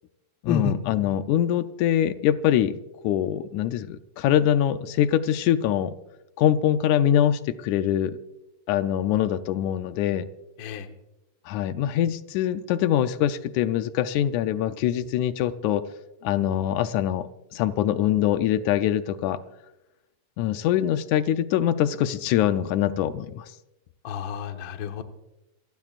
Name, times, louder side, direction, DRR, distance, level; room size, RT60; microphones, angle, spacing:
voice 1, 0.4-2.8 3.0-5.9 6.4-8.2 8.7-10.3 11.5-15.9 16.2-19.4 20.4-23.5, left 11 dB, 80° left, 11 dB, 2.0 m, -23 dB
voice 2, 24.0-25.0, left 6 dB, 55° left, 6 dB, 1.4 m, -29 dB
28.0 x 18.0 x 2.5 m, 0.97 s
omnidirectional pair, 3.4 m